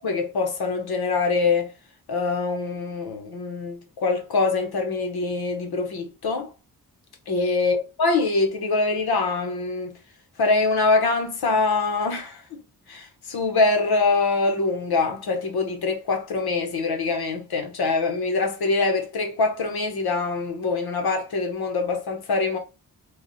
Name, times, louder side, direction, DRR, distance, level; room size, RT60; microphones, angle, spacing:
voice 1, 0.0-1.7 2.1-6.5 7.3-9.9 10.4-12.6 12.9-22.6, left 3 dB, 85° left, 1.1 m, -24 dB
3.3 x 2.4 x 4.1 m
wide cardioid pair, 130°, 37 cm